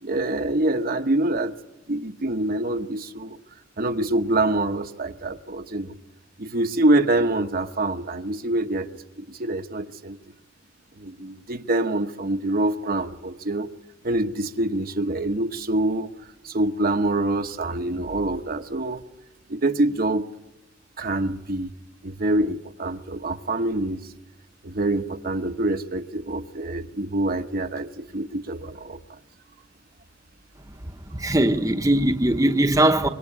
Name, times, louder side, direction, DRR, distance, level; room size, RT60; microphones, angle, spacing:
voice 1, 0.0-1.6 1.9-3.4 3.8-5.9 6.4-10.2 11.0-13.7 14.0-16.1 16.4-19.0 19.5-20.3 21.0-21.7 22.0-24.0 24.6-29.2, right 2 dB, 50° right, 1.0 m, -25 dB
voice 2, 31.1-33.1, right 1 dB, 20° right, 1.0 m, -20 dB
25.5 x 22.5 x 9.8 m
head